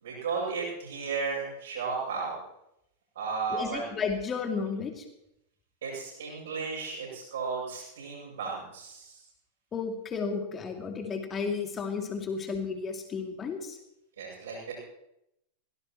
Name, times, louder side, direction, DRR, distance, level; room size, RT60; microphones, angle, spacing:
voice 1, 0.0-2.4 3.2-3.8 5.8-9.2 14.2-14.7, right 5 dB, 65° right, -8 dB, 7.0 m, -34 dB
voice 2, 3.5-5.0 9.7-13.8, left 5 dB, 25° left, 3 dB, 2.7 m, -33 dB
22.5 x 17.5 x 3.1 m, 0.82 s
figure-of-eight pair, 90°, 0 cm